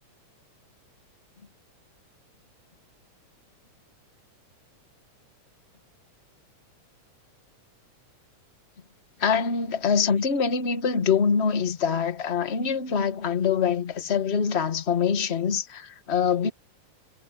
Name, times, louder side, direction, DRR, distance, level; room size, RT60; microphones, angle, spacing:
voice 1, 9.2-16.5, left 6 dB, 35° left, 1.1 m, -24 dB
omnidirectional pair, 3.3 m